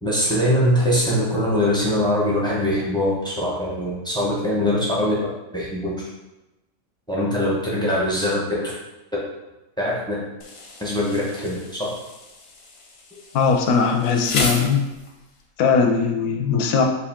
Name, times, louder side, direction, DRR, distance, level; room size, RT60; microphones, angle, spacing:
voice 1, 0.0-5.1 5.5-5.9 7.1-8.7 9.8-10.1 10.8-11.9, left 1 dB, 5° left, -6 dB, 0.7 m, -22 dB
Insect, 10.4-15.4, left 3 dB, 55° left, 0.7 m, -33 dB
voice 2, 13.3-14.8 15.6-16.8, left 5 dB, 90° left, 3 dB, 1.1 m, -19 dB
4.7 x 2.6 x 3.5 m, 1.0 s
omnidirectional pair, 1.5 m